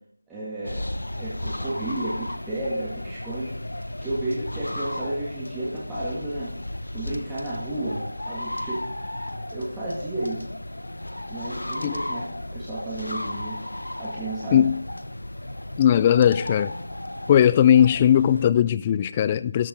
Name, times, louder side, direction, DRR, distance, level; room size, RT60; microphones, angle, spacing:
voice 1, 0.3-3.5 4.0-6.6 6.9-8.8 9.5-10.4 11.3-13.6 14.0-14.6, right 1 dB, 5° right, 2.0 m, -32 dB
sound 1, 0.6-18.5, left 1 dB, 75° left, 1.1 m, -34 dB
voice 2, 15.8-16.7 17.3-19.7, left 10 dB, 15° left, 0.3 m, -18 dB
13.5 x 10.5 x 3.9 m
figure-of-eight pair, 165°, 0 cm